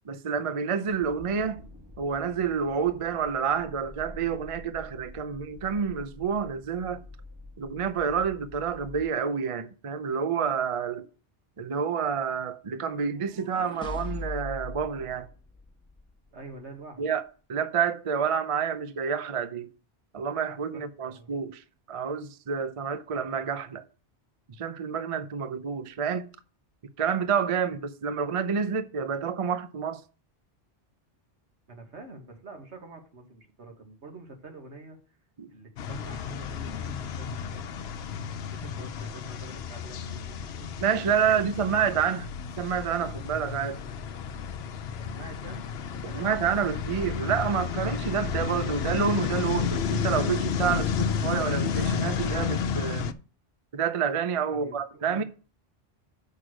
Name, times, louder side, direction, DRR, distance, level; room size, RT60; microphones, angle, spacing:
voice 1, 0.1-1.6 2.0-7.0 7.6-11.1 11.6-15.3 17.0-17.2 17.5-19.7 20.1-23.8 24.6-26.3 27.0-30.0 35.4-35.5 40.8-42.3 42.6-43.8 46.0-53.0 53.7-55.2, right 7 dB, 40° right, 0.5 m, -28 dB
sound 1, 0.8-9.1, left 2 dB, 20° right, 1.3 m, -47 dB
sound 2, 12.9-16.1, left 3 dB, 5° left, 1.2 m, -40 dB
voice 2, 16.3-17.0 20.7-21.3 31.7-35.0 35.5-37.9 38.4-40.7 41.1-41.8 44.9-45.6 45.9-46.8 54.5-55.2, right 2 dB, 75° right, 1.9 m, -47 dB
sound 3, 35.8-53.1, left 6 dB, 65° left, 0.8 m, -31 dB
6.3 x 5.5 x 6.2 m
omnidirectional pair, 1.2 m